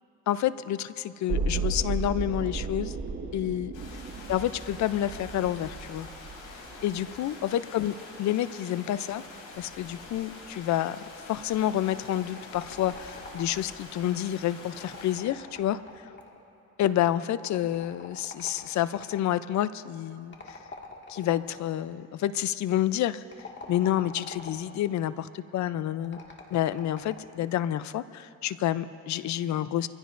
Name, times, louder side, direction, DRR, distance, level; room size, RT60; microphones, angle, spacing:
voice 1, 0.3-3.0 3.3-3.7 4.3-6.1 6.8-9.2 9.6-15.8 16.8-20.3 21.1-23.2 23.7-26.2 26.5-29.9, left 12 dB, 65° left, 15 dB, 0.5 m, -29 dB
sound 1, 1.3-7.3 7.6-7.7, right 3 dB, 55° right, 1.5 m, -34 dB
sound 2, 3.7-15.2, left 3 dB, 90° left, 3.5 m, -46 dB
sound 3, 12.2-13.8 14.6-16.5 17.5-19.3 20.3-21.6 23.2-24.8 26.0-27.4, left 3 dB, 40° left, 1.9 m, -45 dB
24.5 x 15.5 x 2.6 m, 2.7 s
cardioid pair, 90°, 30 cm